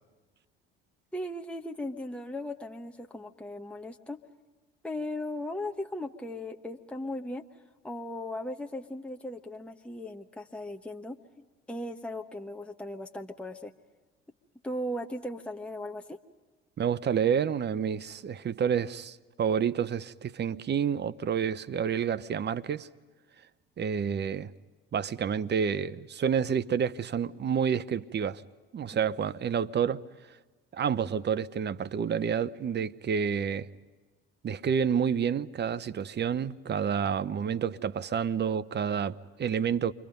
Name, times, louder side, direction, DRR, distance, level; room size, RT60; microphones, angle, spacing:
voice 1, 1.1-4.2 4.8-7.5 7.8-13.7 14.6-16.2, left 1 dB, 5° left, 1.1 m, -37 dB
voice 2, 16.8-22.9 23.8-24.5 24.9-28.4 28.7-30.0 30.7-33.7 34.4-39.9, right 7 dB, 35° right, 0.8 m, -29 dB
29.0 x 24.0 x 5.3 m
hypercardioid pair, 55°, 31 cm